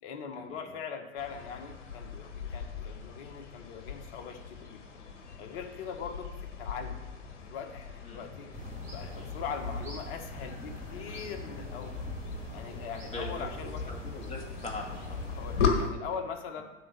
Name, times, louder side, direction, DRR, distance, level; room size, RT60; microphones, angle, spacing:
voice 1, 0.0-5.0 5.4-8.5 8.9-12.0 12.5-14.0 15.3-16.6, left 6 dB, 50° left, 4 dB, 1.5 m, -41 dB
sound 1, 1.2-15.7, left 7 dB, 70° left, 1.8 m, -39 dB
sound 2, 8.5-15.9, left 2 dB, 20° right, 3.3 m, -40 dB
voice 2, 13.1-13.5 13.9-15.2, left 2 dB, 20° left, 0 dB, 1.8 m, -41 dB
7.7 x 5.0 x 6.8 m, 1.1 s
hypercardioid pair, 100°, 37 cm